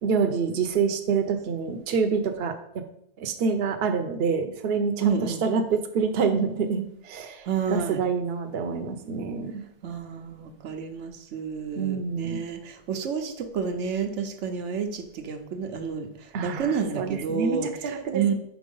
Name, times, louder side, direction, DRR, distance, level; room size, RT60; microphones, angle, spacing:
voice 1, 0.0-2.8 3.2-9.6 11.8-12.5 16.3-18.3, right 5 dB, 60° right, 7 dB, 0.9 m, -27 dB
voice 2, 5.0-5.4 7.4-8.0 9.8-17.7 18.1-18.3, right 6 dB, 90° right, 6 dB, 1.0 m, -30 dB
5.1 x 4.3 x 5.3 m, 0.75 s
omnidirectional pair, 1.2 m